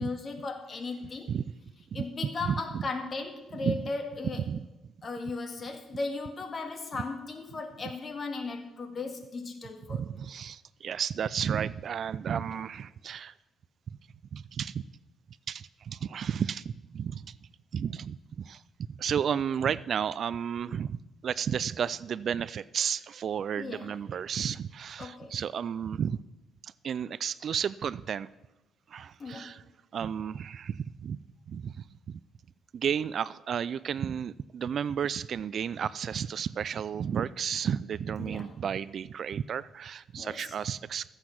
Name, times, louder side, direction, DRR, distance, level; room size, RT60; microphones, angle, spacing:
voice 1, 0.0-1.3 1.9-4.4 5.0-10.0 23.6-23.9 25.0-25.3 29.2-29.5 38.2-38.5 40.2-40.5, left 3 dB, 40° left, 5 dB, 1.9 m, -36 dB
voice 2, 2.4-2.9 3.6-3.9 4.5-4.7 9.9-13.3 14.3-14.9 15.5-17.4 17.7-18.6 18.9-26.2 26.6-28.3 28.9-29.6 29.9-31.2 31.5-32.2 32.7-41.1, right 8 dB, 60° right, 19 dB, 0.3 m, -32 dB
13.5 x 8.0 x 5.9 m, 1.0 s
cardioid pair, 90°, 0 cm